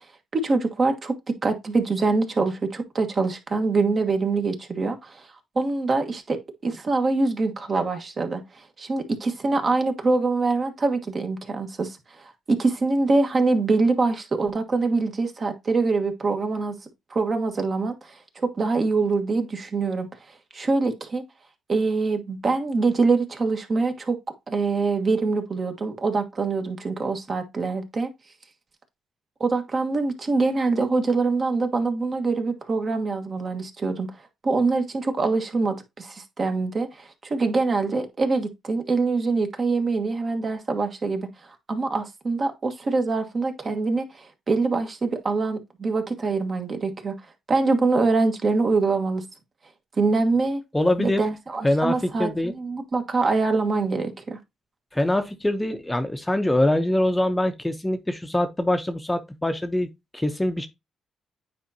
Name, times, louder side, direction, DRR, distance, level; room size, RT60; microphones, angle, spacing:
voice 1, 0.3-1.1 1.4-5.3 5.5-8.4 8.8-16.7 17.1-20.1 20.5-21.2 21.7-24.2 24.5-28.1 29.4-34.1 34.4-41.3 41.7-47.1 47.5-49.2 50.0-50.6 51.0-54.4, right 3 dB, 40° right, 1.3 m, -24 dB
voice 2, 50.7-51.2 51.6-52.5 54.9-59.9 60.1-60.7, left 1 dB, 10° left, 0.7 m, -23 dB
9.2 x 4.3 x 2.7 m
cardioid pair, 90°, 0 cm